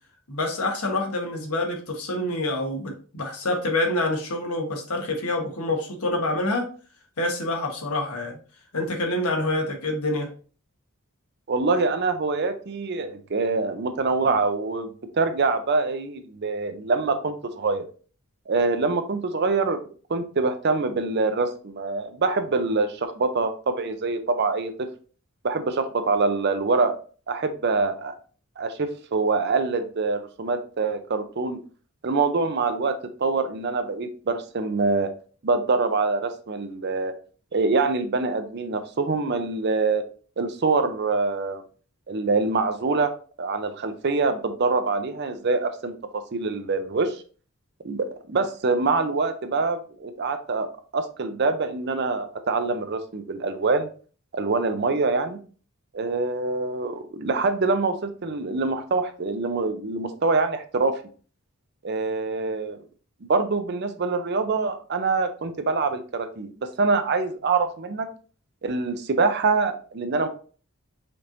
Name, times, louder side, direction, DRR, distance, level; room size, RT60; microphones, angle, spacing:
voice 1, 0.3-6.7 7.2-8.4 8.7-10.3, left 2 dB, 85° left, 2 dB, 1.1 m, -27 dB
voice 2, 11.5-17.8 18.5-19.8 20.1-24.9 25.4-26.9 27.3-28.1 28.6-31.6 32.0-35.1 35.4-37.1 37.5-40.0 40.4-41.6 42.1-43.1 43.4-47.2 47.8-53.9 54.3-55.4 55.9-61.0 61.8-62.8 63.2-68.1 68.6-70.3, right 3 dB, 50° right, 8 dB, 0.5 m, -25 dB
5.1 x 3.0 x 2.6 m, 0.39 s
head